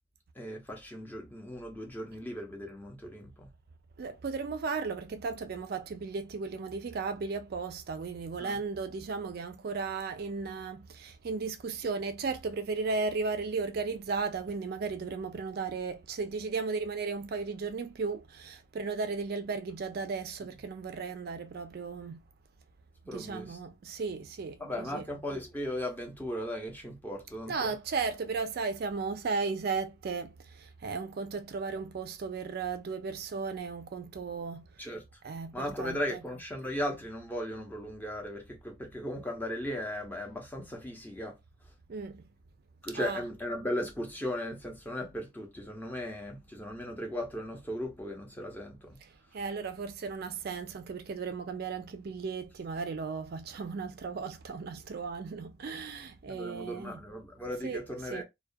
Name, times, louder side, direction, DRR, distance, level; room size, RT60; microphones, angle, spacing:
voice 1, 0.4-3.5 8.4-8.6 23.1-23.6 24.6-27.7 34.8-35.0 35.5-41.3 42.8-49.0 56.3-58.2, equal, 10° left, 0.6 m, -37 dB
voice 2, 4.0-22.2 23.1-25.0 27.5-34.6 35.2-36.2 41.9-42.2 42.9-43.2 49.0-57.0 57.6-58.2, right 4 dB, 50° right, 0.3 m, -35 dB
2.3 x 2.2 x 2.5 m
head